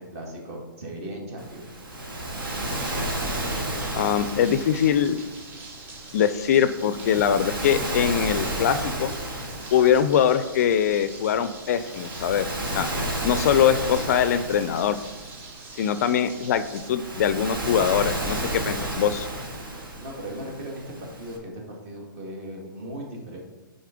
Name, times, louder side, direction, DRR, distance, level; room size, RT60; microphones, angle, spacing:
voice 1, 0.0-1.7 19.9-23.4, right 1 dB, 40° right, -1 dB, 1.9 m, -37 dB
Waves surf, 1.4-21.4, right 1 dB, 80° right, 1.9 m, -32 dB
sound 1, 2.4-16.9, right 3 dB, 20° right, 0.7 m, -44 dB
voice 2, 3.9-5.2 6.1-9.1 9.7-12.9 13.2-15.0 15.8-19.3, left 9 dB, 45° left, 12 dB, 0.4 m, -22 dB
6.6 x 4.1 x 5.0 m, 1.2 s
hypercardioid pair, 145°, 12 cm